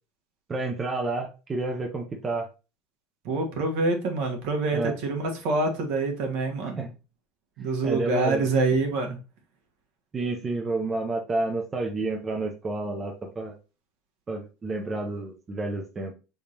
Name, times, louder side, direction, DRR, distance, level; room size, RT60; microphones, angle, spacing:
voice 1, 0.5-2.5 4.7-4.9 6.8-6.9 7.6-8.5 10.1-13.6 14.3-16.1, right 2 dB, 20° right, 0.6 m, -30 dB
voice 2, 3.2-6.9 7.6-9.2, right 3 dB, 60° right, 1.3 m, -26 dB
5.0 x 3.5 x 2.8 m
cardioid pair, 160°, 0 cm